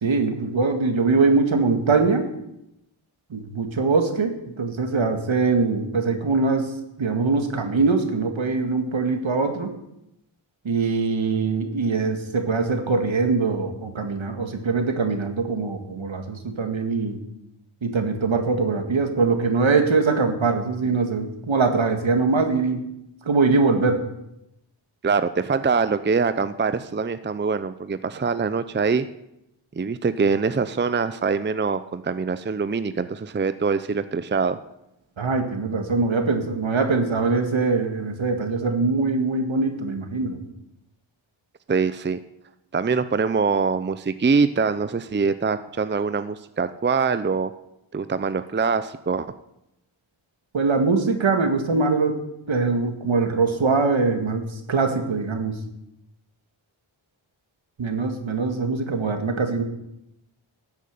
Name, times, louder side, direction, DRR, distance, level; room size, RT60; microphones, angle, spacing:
voice 1, 0.0-2.3 3.3-6.7 7.0-9.7 10.6-17.2 17.8-22.8 23.3-24.0 35.2-40.4 50.5-52.2 52.5-55.6 57.8-59.6, right 4 dB, 70° right, 5 dB, 2.0 m, -22 dB
voice 2, 25.0-29.1 29.7-34.6 41.7-42.2 42.7-47.5 47.9-49.3, right 5 dB, 25° right, 12 dB, 0.6 m, -24 dB
13.5 x 8.3 x 6.7 m, 0.84 s
cardioid pair, 50°, 49 cm